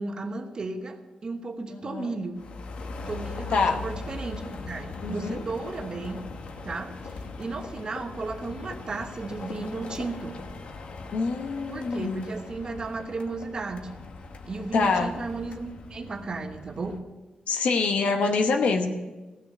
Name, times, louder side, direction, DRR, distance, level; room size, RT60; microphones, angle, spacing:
voice 1, 0.0-2.4 3.1-6.3 6.6-10.4 11.7-13.9 14.4-17.0, right 3 dB, 40° right, 5 dB, 1.2 m, -34 dB
voice 2, 1.7-2.1 3.5-3.8 5.0-5.4 11.1-12.2 14.7-15.1 17.5-19.0, left 4 dB, 80° left, 4 dB, 1.0 m, -25 dB
sound 1, 2.4-17.0, left 3 dB, 55° left, 1.1 m, -40 dB
16.0 x 6.4 x 7.6 m, 1.2 s
wide cardioid pair, 135°, 2 cm